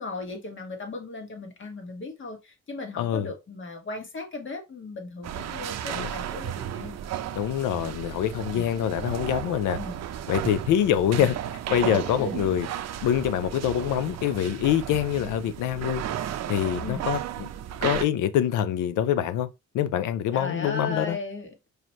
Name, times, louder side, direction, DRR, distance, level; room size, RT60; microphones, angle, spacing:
voice 1, 0.0-7.0 9.7-10.0 11.1-11.3 12.2-12.4 16.8-17.1 20.3-21.5, left 3 dB, 40° left, 1.5 m, -37 dB
voice 2, 3.0-3.3 5.9-6.1 7.3-9.8 10.3-11.4 11.7-12.7 13.0-16.0 16.5-17.5 17.8-19.5 19.7-21.2, left 10 dB, 85° left, 0.6 m, -25 dB
sound 1, 5.2-18.0, right 10 dB, 60° right, 0.6 m, -34 dB
4.9 x 2.6 x 3.0 m
cardioid pair, 90°, 30 cm